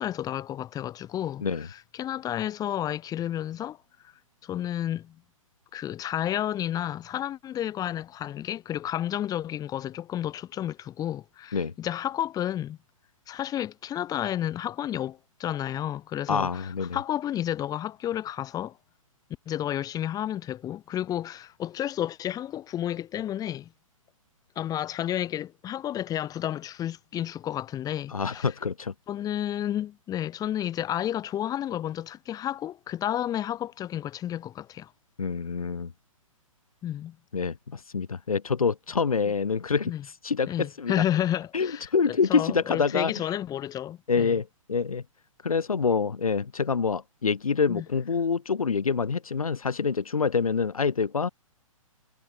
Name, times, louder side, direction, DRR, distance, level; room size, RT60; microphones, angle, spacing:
voice 1, 0.0-3.8 4.0-4.1 4.4-5.2 5.7-12.8 13.3-18.8 19.5-23.7 24.6-28.5 29.1-34.9 36.8-37.2 39.9-40.0 40.4-44.4 47.7-47.9, left 11 dB, 20° left, 7.3 m, -31 dB
voice 2, 16.3-17.0 28.1-28.9 35.2-35.9 37.3-39.9 40.2-40.9 41.5-43.1 44.1-45.0 45.4-51.3, left 5 dB, 80° left, 1.8 m, -26 dB
hypercardioid pair, 130°, 18 cm